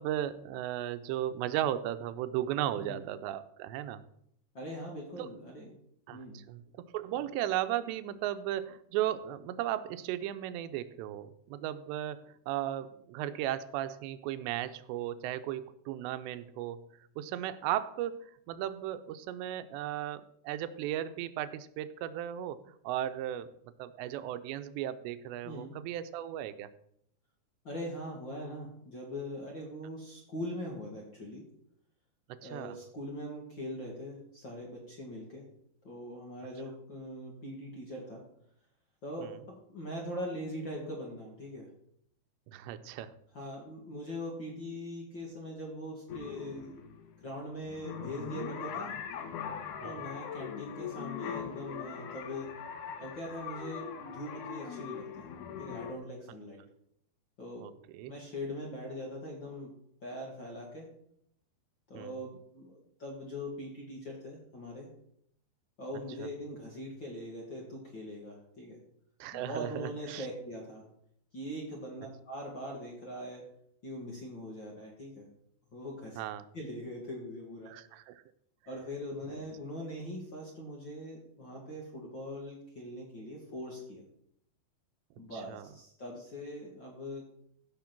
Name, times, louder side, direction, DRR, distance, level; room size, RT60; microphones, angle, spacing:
voice 1, 0.0-4.0 5.2-5.3 6.1-6.2 6.5-16.8 17.2-23.5 23.8-26.7 32.3-32.8 39.2-39.3 42.5-43.1 49.8-50.0 57.6-58.1 61.9-62.2 66.2-66.3 69.2-70.3 76.2-76.4 77.7-78.2 85.3-85.7, right 12 dB, 90° right, 12 dB, 2.9 m, -36 dB
voice 2, 2.7-3.0 4.5-5.7 6.1-6.4 25.4-25.7 27.6-31.4 32.4-35.4 35.8-38.2 39.0-39.3 39.7-41.7 43.3-46.8 47.2-48.9 49.8-52.5 53.0-55.2 55.6-56.6 57.4-57.6 58.0-59.7 60.0-60.9 61.9-64.9 65.8-68.8 69.3-70.8 71.3-73.4 73.8-75.3 75.7-76.2 76.5-77.7 78.7-84.0 85.2-87.2, equal, 40° left, -1 dB, 1.7 m, -41 dB
sound 1, 46.1-55.9, left 7 dB, 70° left, 2.0 m, -41 dB
15.5 x 5.7 x 6.0 m, 0.72 s
omnidirectional pair, 4.9 m